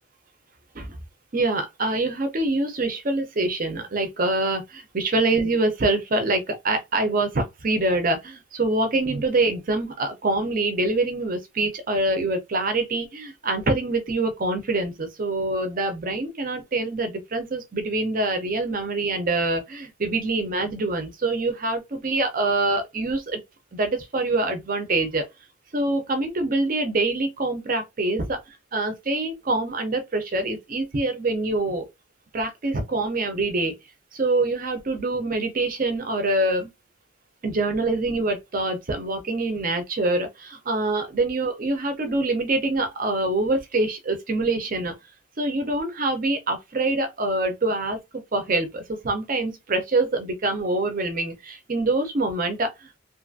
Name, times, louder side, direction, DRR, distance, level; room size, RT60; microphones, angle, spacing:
voice 1, 1.3-23.4 23.7-25.2 25.7-28.4 28.7-31.9 32.3-33.7 34.1-36.7 37.4-44.9 45.4-48.0 48.3-53.0, right 2 dB, 40° right, 0.6 m, -25 dB
2.6 x 2.4 x 2.6 m
head